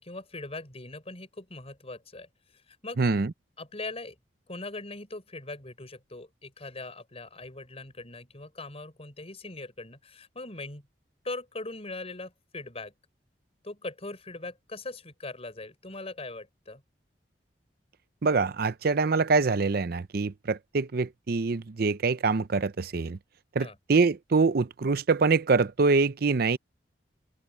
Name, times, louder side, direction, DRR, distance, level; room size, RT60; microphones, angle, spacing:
voice 1, 0.0-2.3 2.7-3.0 3.6-4.2 4.5-10.8 11.2-12.9 13.6-16.8 23.6-23.8, left 2 dB, 35° left, 5.2 m, -40 dB
voice 2, 3.0-3.3 18.2-23.2 23.5-26.6, right 4 dB, 60° right, 0.6 m, -25 dB
head